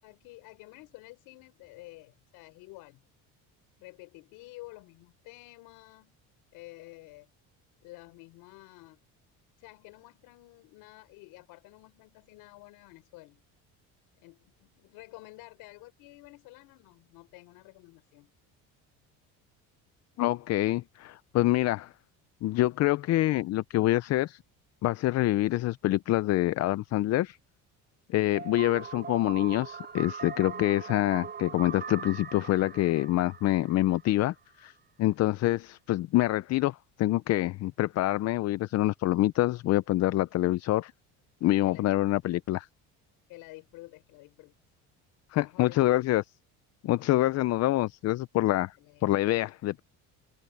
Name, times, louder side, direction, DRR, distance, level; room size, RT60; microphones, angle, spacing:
voice 1, 0.0-3.1 3.8-6.1 6.5-7.3 7.8-9.0 9.6-13.4 14.2-18.3 38.5-38.6 41.6-41.9 43.3-44.6 45.3-46.0 48.8-49.2, left 21 dB, 85° left, 4.5 m, -50 dB
voice 2, 20.2-21.9 22.4-24.4 24.8-27.4 28.1-34.7 35.0-40.9 41.4-42.7 45.3-46.2 46.8-48.7 49.0-49.8, left 16 dB, 50° left, 0.5 m, -26 dB
sound 1, 28.3-34.2, right 6 dB, 30° right, 4.7 m, -41 dB
open air
cardioid pair, 130°, 35 cm